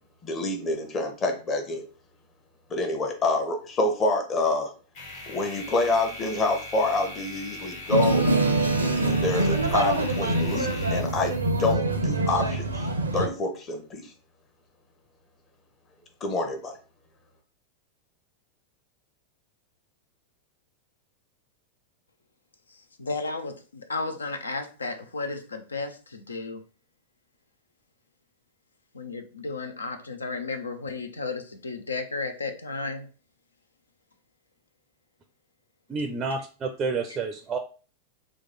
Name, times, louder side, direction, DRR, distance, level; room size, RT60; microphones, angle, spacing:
voice 1, 0.2-1.8 2.7-4.7 5.3-8.2 9.0-12.9 13.1-14.1 16.2-16.7, left 2 dB, 25° left, 3 dB, 0.9 m, -27 dB
sound 1, 4.9-11.7, left 2 dB, 55° left, 1.5 m, -41 dB
sound 2, 7.9-13.3, right 2 dB, 75° right, 0.5 m, -24 dB
voice 2, 23.0-26.6 28.9-33.1, left 3 dB, 75° left, 7 dB, 0.5 m, -33 dB
voice 3, 35.9-37.6, right 4 dB, 25° right, 5 dB, 0.4 m, -29 dB
3.0 x 2.3 x 4.3 m, 0.37 s
figure-of-eight pair, 90°, 0 cm